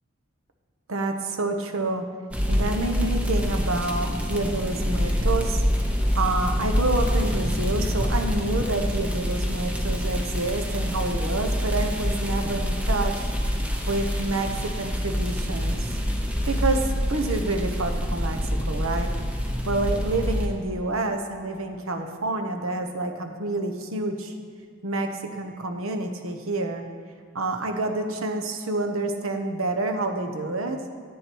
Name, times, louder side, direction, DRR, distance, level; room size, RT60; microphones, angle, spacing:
voice 1, 0.9-2.1 2.5-5.6 6.1-13.3 13.9-15.9 16.5-19.1 19.6-24.3 24.8-26.8 27.3-30.8, right 2 dB, 85° right, 5 dB, 1.0 m, -28 dB
sound 1, 2.3-20.5, equal, 5° right, 0.8 m, -26 dB
10.0 x 8.5 x 4.6 m, 2.1 s
head